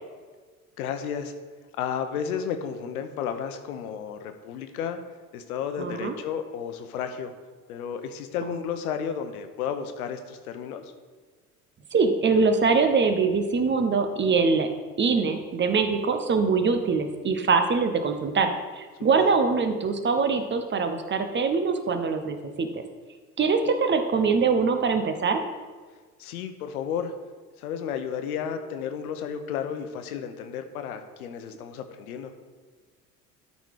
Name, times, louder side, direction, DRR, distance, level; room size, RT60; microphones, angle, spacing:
voice 1, 0.8-1.3 1.8-5.0 5.3-7.3 7.7-10.9 19.0-19.3 26.2-27.1 27.6-32.3, left 8 dB, 65° left, 8 dB, 1.0 m, -32 dB
voice 2, 5.8-6.1 8.4-8.6 11.9-14.7 15.0-22.8 23.4-25.4, right 4 dB, 25° right, 7 dB, 0.9 m, -23 dB
12.5 x 4.2 x 4.9 m, 1.4 s
figure-of-eight pair, 65°, 47 cm